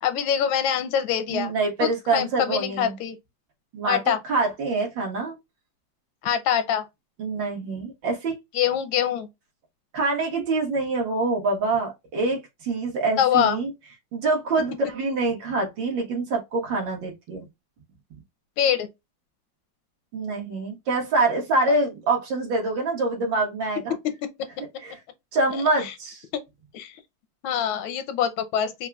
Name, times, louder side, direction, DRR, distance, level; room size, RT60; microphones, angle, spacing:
voice 1, 0.0-1.5 1.8-3.2 3.8-4.2 6.2-6.8 8.5-9.3 13.2-13.6 18.6-18.9 23.9-24.1 25.5-25.9 26.3-26.4 26.7-26.9 27.4-28.9, left 9 dB, 90° left, 1.5 m, -24 dB
voice 2, 1.3-3.0 3.7-4.0 4.3-5.4 7.2-8.4 9.9-13.7 14.1-17.5 20.1-23.9 24.8-25.0 25.3-26.2, right 3 dB, 70° right, 2.1 m, -25 dB
5.4 x 2.3 x 2.3 m
omnidirectional pair, 2.1 m